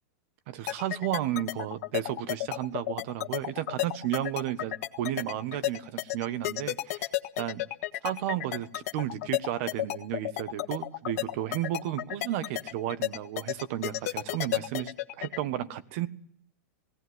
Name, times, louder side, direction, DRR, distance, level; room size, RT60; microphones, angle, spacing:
voice 1, 0.5-7.0 7.4-7.6 8.0-16.1, right 12 dB, 55° right, 14 dB, 1.3 m, -33 dB
sound 1, 0.7-15.4, left 15 dB, 65° left, 1.5 m, -31 dB
19.0 x 17.5 x 9.6 m, 0.69 s
supercardioid pair, 145°, 9 cm